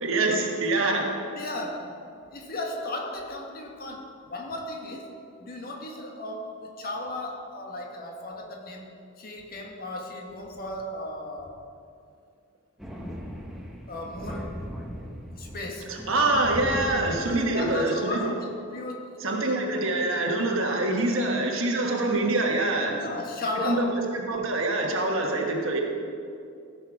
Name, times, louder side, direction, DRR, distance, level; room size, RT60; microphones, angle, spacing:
voice 1, 0.0-1.2 15.9-18.3 19.2-23.0 23.6-25.8, right 2 dB, 65° right, 1 dB, 1.3 m, -25 dB
voice 2, 1.3-1.9 2.3-5.1 5.4-8.9 9.2-11.6 13.9-14.6 15.4-16.1 17.5-19.2 22.9-23.9, left 2 dB, 45° left, 1 dB, 1.5 m, -35 dB
Thunder, 12.8-17.9, equal, ahead, 1.0 m, -38 dB
15.0 x 6.6 x 4.9 m, 2.4 s
head